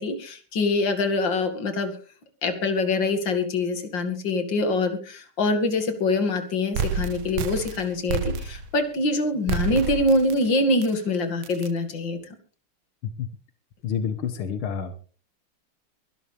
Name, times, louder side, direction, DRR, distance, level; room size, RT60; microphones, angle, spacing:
voice 1, 0.0-1.9 2.4-12.2, left 2 dB, 65° left, 7 dB, 2.8 m, -24 dB
sound 1, 6.7-8.8 9.5-10.4 10.8-10.9 11.4-11.7, right 6 dB, 80° right, 1.8 m, -29 dB
voice 2, 13.8-15.0, left 7 dB, 90° left, 9 dB, 2.1 m, -29 dB
23.0 x 12.0 x 3.4 m, 0.38 s
omnidirectional pair, 2.2 m